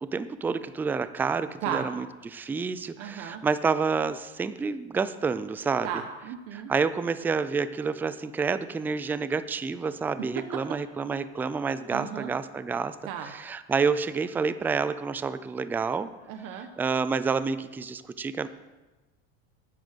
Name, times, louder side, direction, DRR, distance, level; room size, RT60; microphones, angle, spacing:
voice 1, 0.0-5.9 6.5-16.1 16.8-18.5, right 5 dB, 5° right, 14 dB, 0.3 m, -29 dB
voice 2, 3.0-3.4 5.8-6.7 10.4-10.5 11.9-12.3 13.1-13.3 16.3-16.7, right 9 dB, 60° right, 5 dB, 1.2 m, -34 dB
10.5 x 9.5 x 6.7 m, 1.1 s
supercardioid pair, 140°, 30 cm